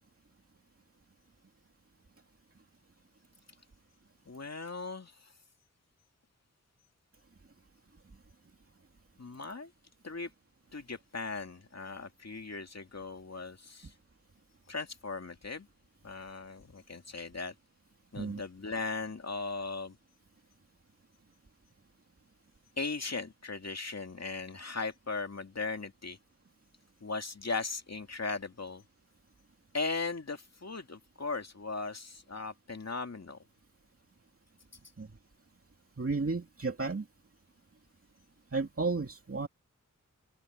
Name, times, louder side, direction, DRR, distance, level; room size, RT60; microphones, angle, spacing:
voice 1, 4.3-5.3 9.2-9.7 10.0-10.3 10.7-13.9 14.7-15.7 16.0-17.5 18.1-20.0 22.8-26.2 27.0-28.8 29.7-33.4, left 3 dB, 55° left, 2.5 m, -38 dB
voice 2, 36.0-37.0 38.5-39.5, right 3 dB, 45° right, 2.4 m, -33 dB
open air
wide cardioid pair, 60°, 32 cm